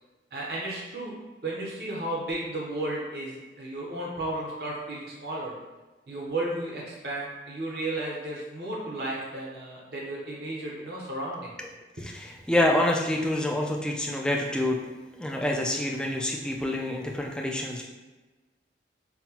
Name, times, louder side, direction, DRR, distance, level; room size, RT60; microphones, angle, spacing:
voice 1, 0.3-1.1 1.4-5.5 6.1-11.5 12.0-12.1, right 1 dB, 60° right, -4 dB, 0.8 m, -33 dB
voice 2, 12.0-14.8 15.2-17.8, left 1 dB, 5° left, 0 dB, 0.4 m, -27 dB
5.6 x 2.2 x 2.9 m, 1.2 s
head